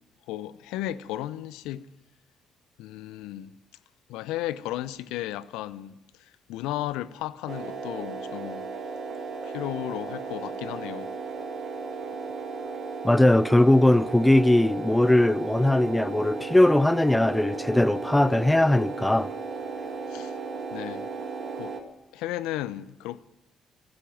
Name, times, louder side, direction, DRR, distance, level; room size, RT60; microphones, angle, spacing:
voice 1, 0.3-1.9 2.8-3.5 4.1-8.7 9.4-11.1 20.1-20.3 20.7-21.1 21.6-21.7 22.1-23.2, left 14 dB, 75° left, 0.7 m, -34 dB
sound 1, 7.5-21.8, right 4 dB, 55° right, 2.0 m, -35 dB
voice 2, 13.0-19.3, left 1 dB, 10° left, 0.5 m, -20 dB
15.5 x 12.0 x 7.5 m
hypercardioid pair, 50°, 0 cm